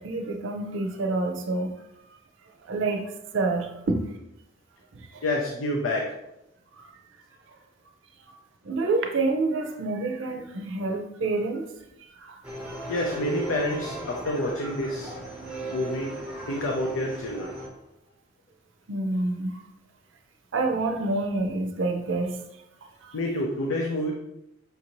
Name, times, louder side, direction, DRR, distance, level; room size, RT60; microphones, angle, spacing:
voice 1, 0.0-1.7 2.7-4.0 4.9-5.2 6.8-6.9 8.6-11.7 12.0-12.4 18.9-19.6 20.5-22.4 23.0-23.1, right 3 dB, 75° right, 3 dB, 0.5 m, -28 dB
voice 2, 5.2-6.1 12.9-15.1 15.7-16.1 16.5-17.5 23.1-24.1, left 1 dB, 85° left, 0 dB, 0.5 m, -28 dB
sound 1, 12.4-17.7, right 1 dB, 5° right, 0.6 m, -37 dB
5.3 x 2.6 x 2.9 m, 0.89 s
head